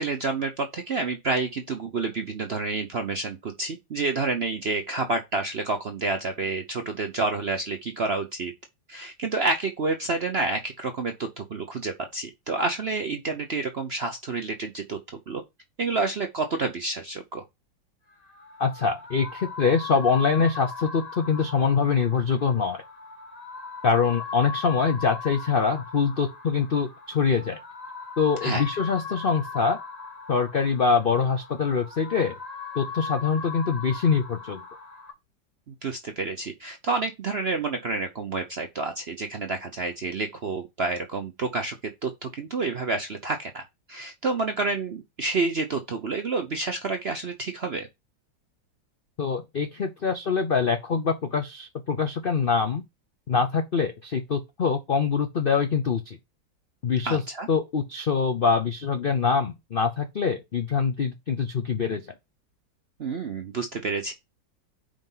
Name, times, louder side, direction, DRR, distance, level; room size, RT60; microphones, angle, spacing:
voice 1, 0.0-8.5 8.9-15.0 15.3-15.4 15.8-17.4 28.4-28.6 35.7-41.8 42.0-43.6 43.9-47.9 57.0-57.5 63.0-64.1, right 3 dB, 55° right, 0.7 m, -29 dB
sound 1, 18.1-35.1, left 5 dB, 25° left, 0.9 m, -39 dB
voice 2, 18.6-22.8 23.8-27.6 28.2-29.8 30.3-32.4 32.7-34.6 49.2-52.8 53.3-56.2 56.8-57.2 57.5-62.1, left 5 dB, 70° left, 0.5 m, -24 dB
5.1 x 4.5 x 5.5 m
omnidirectional pair, 2.1 m